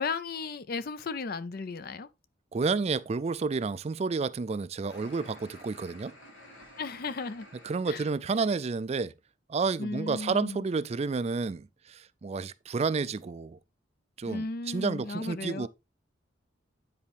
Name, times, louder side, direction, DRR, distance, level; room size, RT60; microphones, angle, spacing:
voice 1, 0.0-2.1 6.8-7.5 7.9-8.0 9.8-10.6 14.2-15.7, left 4 dB, 55° left, 0.5 m, -35 dB
voice 2, 2.5-6.1 7.6-9.1 9.5-13.6 14.2-15.7, right 4 dB, 35° right, 0.4 m, -30 dB
sound 1, 4.9-7.8, left 1 dB, 85° left, 4.0 m, -51 dB
9.7 x 4.3 x 3.4 m
head